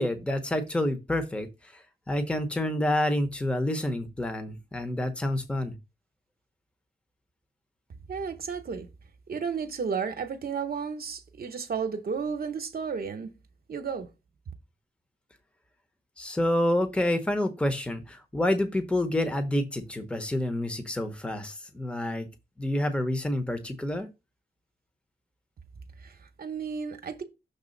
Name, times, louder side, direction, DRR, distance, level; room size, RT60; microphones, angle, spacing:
voice 1, 0.0-5.7 16.2-22.3 22.6-24.1, left 1 dB, 5° left, 0.8 m, -28 dB
voice 2, 8.1-8.9 9.3-13.3 13.7-14.1 26.0-27.2, right 6 dB, 60° right, 0.8 m, -33 dB
6.6 x 3.4 x 5.2 m
wide cardioid pair, 150°, 17 cm